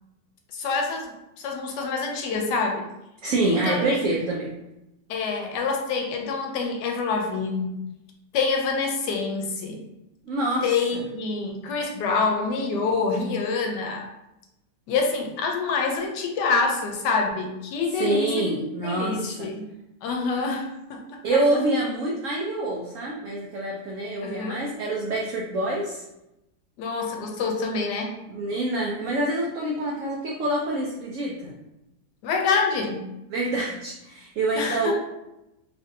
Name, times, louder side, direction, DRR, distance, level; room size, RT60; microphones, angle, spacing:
voice 1, 0.5-2.9 3.5-4.0 5.1-7.8 8.3-9.8 10.6-14.1 14.9-19.7 20.0-21.2 24.2-24.6 26.8-28.2 32.2-33.1 34.6-34.9, left 4 dB, 75° left, 2 dB, 1.1 m, -26 dB
voice 2, 3.2-4.5 10.3-10.7 18.0-19.5 21.2-26.0 28.3-31.5 33.3-34.9, right 2 dB, 80° right, -2 dB, 0.7 m, -26 dB
3.2 x 2.5 x 2.6 m, 0.90 s
omnidirectional pair, 1.9 m